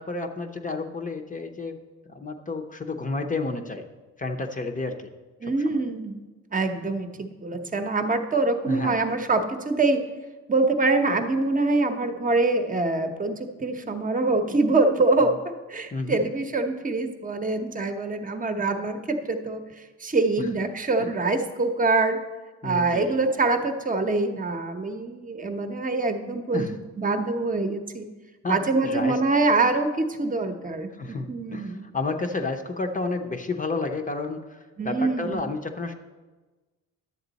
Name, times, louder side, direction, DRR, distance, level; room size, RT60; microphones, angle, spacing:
voice 1, 0.0-1.8 2.1-3.8 4.2-5.1 5.4-5.8 8.7-9.0 15.9-16.2 20.4-20.5 21.0-21.1 22.6-23.2 26.5-26.8 28.4-29.2 31.0-35.9, left 3 dB, 25° left, 5 dB, 0.8 m, -31 dB
voice 2, 5.4-6.2 6.5-10.0 10.5-15.4 15.7-19.6 20.0-22.2 22.6-26.7 27.0-28.0 28.5-30.9 31.3-31.9 34.8-35.4, right 3 dB, 25° right, 6 dB, 0.9 m, -24 dB
10.5 x 7.3 x 4.1 m, 1.3 s
cardioid pair, 90°, 30 cm